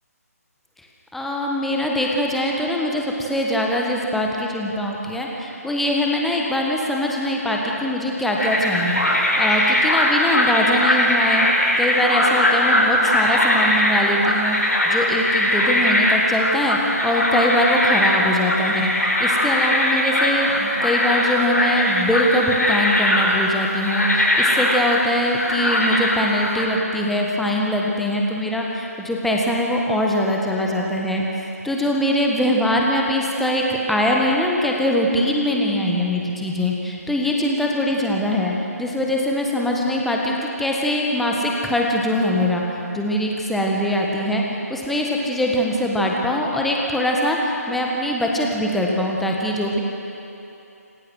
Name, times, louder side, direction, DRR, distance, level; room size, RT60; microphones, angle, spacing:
voice 1, 1.1-11.5 11.8-14.6 14.8-16.8 17.0-18.9 19.2-31.2 31.6-38.5 38.8-42.6 42.9-44.4 44.7-49.8, left 1 dB, ahead, -2 dB, 1.5 m, -22 dB
sound 1, 8.4-26.6, left 1 dB, 75° left, 5.3 m, -20 dB
27.0 x 15.0 x 6.3 m, 2.9 s
figure-of-eight pair, 145°, 9 cm